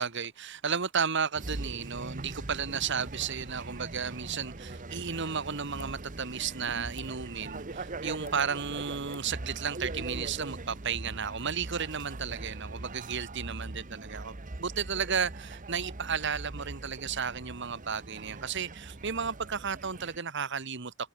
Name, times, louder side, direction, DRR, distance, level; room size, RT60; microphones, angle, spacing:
voice 1, 0.0-21.1, right 6 dB, 55° right, 1.3 m, -33 dB
sound 1, 1.3-20.2, right 2 dB, 40° right, 1.1 m, -41 dB
sound 2, 3.2-3.4 4.3-4.4 5.7-5.9 7.0-7.1 8.2-8.4 9.1-9.3, left 4 dB, 80° left, 2.4 m, -49 dB
head